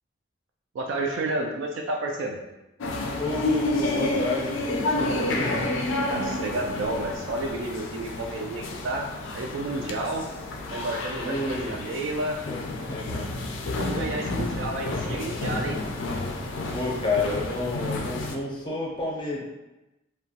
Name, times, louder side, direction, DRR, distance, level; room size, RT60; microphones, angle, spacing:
voice 1, 0.7-2.4 6.1-9.1 9.3-10.2 10.7-12.4 13.6-15.8, right 2 dB, 85° right, 1 dB, 0.3 m, -31 dB
sound 1, 2.8-18.4, left 2 dB, 90° left, 0.3 m, -30 dB
voice 2, 3.2-5.6 11.2-11.7 12.5-13.5 14.1-14.4 16.7-19.4, left 2 dB, 25° left, -3 dB, 0.5 m, -30 dB
2.8 x 2.2 x 2.7 m, 0.99 s
head